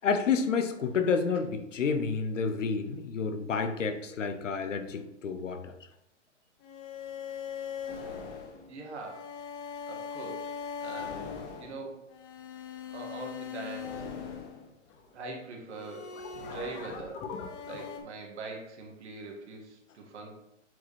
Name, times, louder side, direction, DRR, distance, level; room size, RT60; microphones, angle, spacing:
voice 1, 0.0-5.7, left 5 dB, 80° left, 8 dB, 1.0 m, -29 dB
sound 1, 6.6-15.1 15.7-18.0, left 6 dB, 30° left, 1.1 m, -40 dB
voice 2, 8.7-9.4 9.9-10.5 10.8-12.0 12.9-14.1 15.1-17.2 17.6-20.3, right 3 dB, 65° right, 1 dB, 1.8 m, -42 dB
7.9 x 4.9 x 3.2 m, 0.82 s
hypercardioid pair, 125°, 37 cm